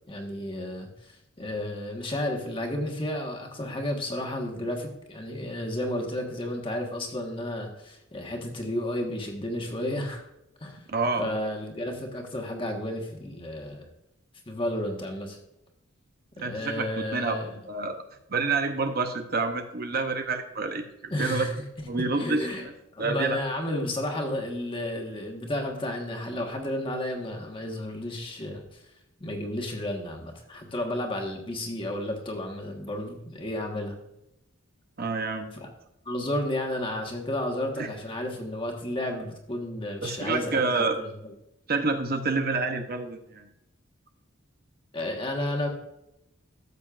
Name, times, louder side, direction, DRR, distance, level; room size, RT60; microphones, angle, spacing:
voice 1, 0.1-10.2 10.6-10.8 11.2-13.9 14.5-15.4 16.4-17.6 21.1-21.5 22.1-22.7 22.9-28.8 29.2-34.0 35.5-35.7 36.0-41.3 44.9-45.7, left 1 dB, 25° left, 2 dB, 1.4 m, -32 dB
voice 2, 10.9-11.3 16.4-17.4 17.7-18.0 18.3-21.5 21.8-22.5 23.0-23.4 35.0-35.5 37.8-37.9 40.0-41.0 41.7-43.5, right 3 dB, 45° right, 6 dB, 0.7 m, -28 dB
13.5 x 7.5 x 2.5 m, 0.86 s
head